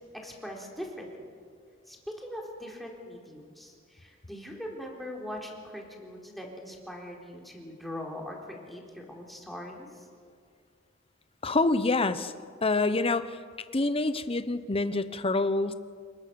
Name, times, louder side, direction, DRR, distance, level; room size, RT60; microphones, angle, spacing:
voice 1, 0.1-1.1 1.9-10.1, left 1 dB, ahead, -1 dB, 3.9 m, -41 dB
voice 2, 11.4-12.3 12.6-13.4 13.7-15.7, left 3 dB, 30° left, 12 dB, 0.9 m, -26 dB
28.0 x 20.0 x 7.0 m, 2.1 s
head